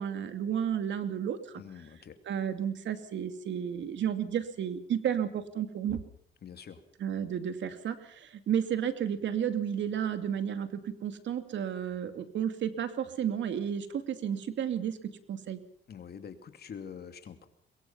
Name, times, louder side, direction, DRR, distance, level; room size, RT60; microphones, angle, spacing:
voice 1, 0.0-1.4 2.3-6.0 7.0-15.6, right 9 dB, 70° right, 9 dB, 2.6 m, -32 dB
voice 2, 1.6-2.2 6.4-6.8 15.9-17.5, left 7 dB, 55° left, 8 dB, 2.7 m, -45 dB
23.0 x 22.5 x 5.8 m, 0.63 s
cardioid pair, 90°, 20 cm